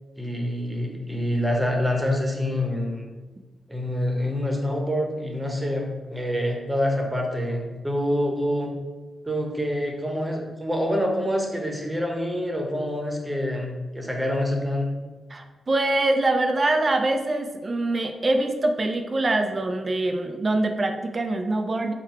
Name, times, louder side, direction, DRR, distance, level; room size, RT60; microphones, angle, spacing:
voice 1, 0.2-3.1 3.7-8.7 9.3-14.9, left 1 dB, 10° right, 0 dB, 0.9 m, -26 dB
voice 2, 15.3-21.9, right 2 dB, 40° right, 7 dB, 0.4 m, -24 dB
3.9 x 2.2 x 4.4 m, 1.2 s
supercardioid pair, 50°, 0 cm